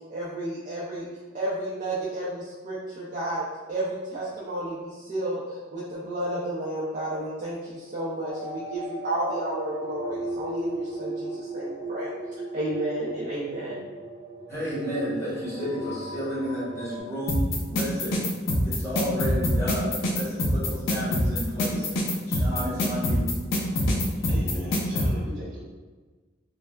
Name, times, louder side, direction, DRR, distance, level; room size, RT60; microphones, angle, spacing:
voice 1, 0.1-1.1 1.3-12.1 12.5-13.8, right 1 dB, 40° right, -8 dB, 0.4 m, -32 dB
sound 1, 8.3-17.0, right 1 dB, 65° left, 1.4 m, -36 dB
voice 2, 14.5-18.2 18.6-23.3 23.7-23.8, equal, 15° left, -9 dB, 1.0 m, -32 dB
sound 2, 17.3-25.1, left 1 dB, 90° left, 0.5 m, -24 dB
voice 3, 24.2-25.6, left 1 dB, 60° right, -10 dB, 0.9 m, -37 dB
3.1 x 2.0 x 2.3 m, 1.4 s
head